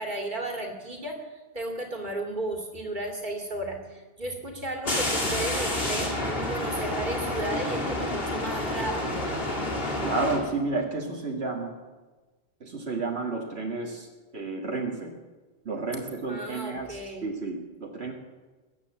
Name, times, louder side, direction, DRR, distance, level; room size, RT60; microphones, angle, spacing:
voice 1, 0.0-6.1 6.5-9.3 16.3-17.3, right 1 dB, 50° right, 2 dB, 2.7 m, -34 dB
sound 1, 4.8-10.4, left 1 dB, 65° left, 3.2 m, -29 dB
voice 2, 10.0-11.7 12.6-14.1 14.3-15.1 15.7-18.1, right 3 dB, 80° right, 0 dB, 2.0 m, -31 dB
22.0 x 8.8 x 7.5 m, 1.2 s
omnidirectional pair, 1.1 m